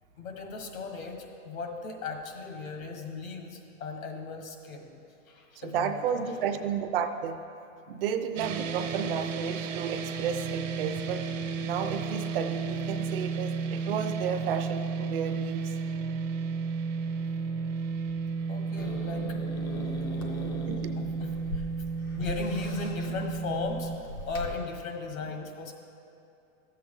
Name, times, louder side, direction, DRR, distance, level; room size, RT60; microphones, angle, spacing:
voice 1, 0.2-4.9 5.3-6.7 10.9-11.0 17.8-17.9 18.5-19.2 20.1-20.6 20.9-21.7 21.9-25.7, left 4 dB, 80° left, 3 dB, 1.6 m, -37 dB
voice 2, 5.6-7.4 7.9-11.2 11.6-15.6 20.7-20.9, right 7 dB, 45° right, 7 dB, 0.6 m, -32 dB
sound 1, 8.4-24.0, right 5 dB, 70° right, 1.2 m, -33 dB
Growling / Hiss, 18.8-24.5, left 1 dB, 20° left, 0.3 m, -40 dB
13.0 x 7.7 x 3.7 m, 2.6 s
hypercardioid pair, 155°, 40 cm